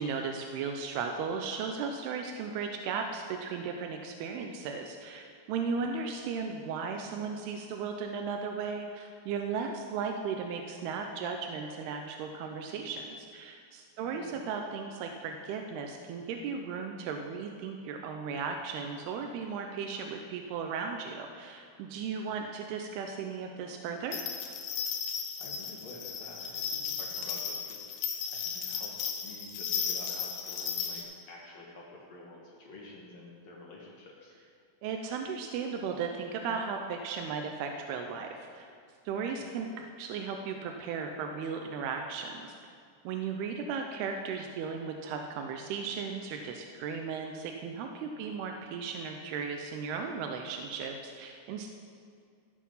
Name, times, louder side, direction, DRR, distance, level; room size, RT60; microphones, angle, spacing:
voice 1, 0.0-24.2 34.8-38.7 39.1-42.7 43.0-51.7, right 5 dB, 85° right, 4 dB, 2.3 m, -36 dB
voice 2, 14.0-14.4 25.4-34.4 39.3-39.4 48.2-48.3, left 2 dB, 60° left, -3 dB, 1.8 m, -49 dB
sound 1, 24.1-31.0, left 7 dB, 75° left, 3.0 m, -35 dB
14.5 x 8.0 x 5.5 m, 2.2 s
omnidirectional pair, 5.3 m